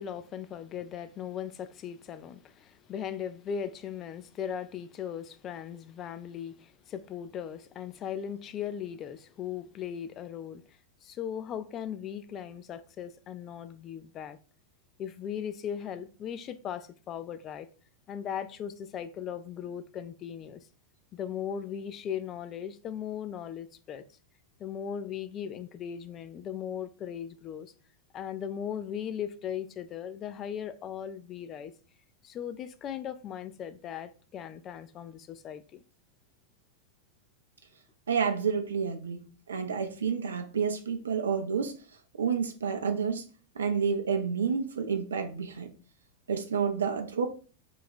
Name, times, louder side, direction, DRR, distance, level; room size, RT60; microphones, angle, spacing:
voice 1, 0.0-10.6 11.0-14.4 15.0-17.7 18.1-20.6 21.1-24.0 24.6-27.7 28.1-31.7 32.2-35.8, left 8 dB, 30° left, 0.3 m, -38 dB
voice 2, 38.1-41.7 42.2-43.3 43.6-45.7 46.3-47.3, right 6 dB, 70° right, 0.5 m, -29 dB
3.1 x 2.3 x 4.2 m
figure-of-eight pair, 90°, 0 cm